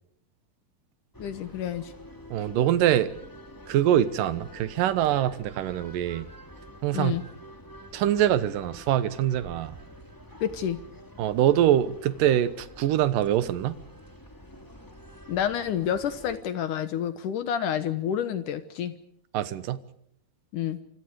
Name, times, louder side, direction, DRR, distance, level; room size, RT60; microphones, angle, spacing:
sound 1, 1.1-16.4, equal, 5° left, 1.9 m, -47 dB
voice 1, 1.2-1.9 6.9-7.2 10.4-10.8 15.3-18.9 20.5-20.8, left 9 dB, 65° left, 11 dB, 2.3 m, -29 dB
voice 2, 2.3-3.1 3.7-6.3 6.8-7.2 7.9-9.7 11.2-13.8 19.3-19.8, right 11 dB, 70° right, 14 dB, 2.5 m, -24 dB
27.5 x 26.0 x 4.9 m, 0.67 s
omnidirectional pair, 4.7 m